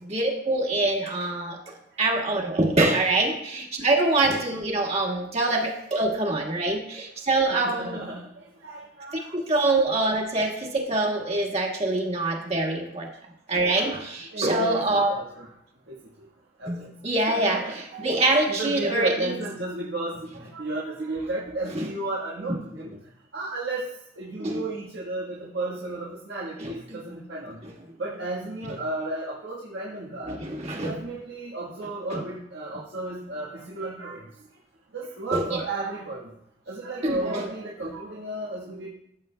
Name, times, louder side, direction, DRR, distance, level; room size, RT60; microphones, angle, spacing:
voice 1, 0.0-8.0 9.3-13.1 13.5-15.1 16.7-19.1 21.7-21.9 24.4-24.6 26.6-26.7 28.6-28.7 30.3-30.9 32.1-32.2 35.3-35.6 37.0-37.5, right 2 dB, 35° right, 0 dB, 1.6 m, -25 dB
voice 2, 7.5-9.3 14.3-15.5 15.9-16.0 16.6-16.9 17.3-22.9 23.3-23.9 24.2-27.6 28.0-30.4 30.7-34.2 34.9-36.3 36.7-38.9, right 2 dB, 90° right, -5 dB, 1.4 m, -33 dB
14.0 x 7.3 x 2.2 m, 0.75 s
head